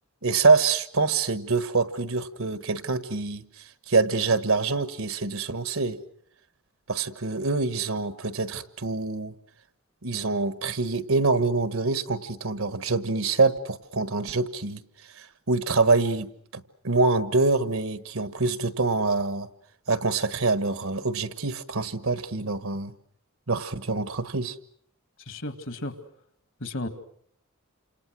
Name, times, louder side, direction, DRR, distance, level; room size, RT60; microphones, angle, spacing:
voice 1, 0.2-3.4 3.9-6.0 6.9-9.3 10.0-14.8 15.2-19.5 19.9-22.9 23.5-24.6, right 3 dB, 75° right, 12 dB, 1.4 m, -25 dB
voice 2, 25.3-25.9 26.6-26.9, left 1 dB, 60° left, 9 dB, 2.2 m, -33 dB
29.5 x 27.0 x 6.2 m, 0.64 s
head